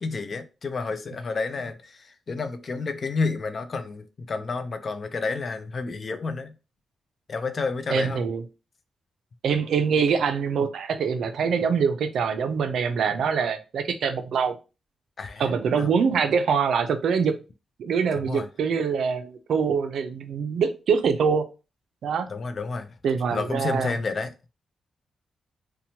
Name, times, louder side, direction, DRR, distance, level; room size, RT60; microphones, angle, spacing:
voice 1, 0.0-6.5 7.3-8.2 15.2-15.4 15.8-15.9 18.1-18.5 22.3-22.9 23.3-24.5, left 4 dB, 40° left, 0.3 m, -30 dB
voice 2, 7.9-8.4 9.4-14.6 15.4-17.4 17.8-21.5 22.0-22.3 23.0-23.9, right 6 dB, 75° right, 0.4 m, -24 dB
2.8 x 2.1 x 2.7 m
wide cardioid pair, 140°, 0 cm